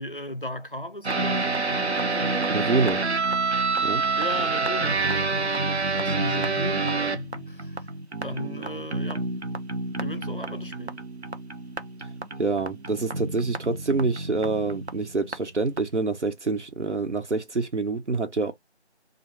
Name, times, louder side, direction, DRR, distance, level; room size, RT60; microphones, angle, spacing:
voice 1, 0.0-2.6 4.2-5.6 5.9-9.3 10.0-11.0, left 1 dB, 50° left, 0.4 m, -36 dB
sound 1, 1.0-15.3 15.8-15.9, right 3 dB, 70° right, 0.6 m, -28 dB
voice 2, 2.5-3.0 3.8-4.0 12.4-18.5, right 3 dB, 90° right, 1.1 m, -26 dB
2.3 x 2.3 x 3.1 m
figure-of-eight pair, 180°, 34 cm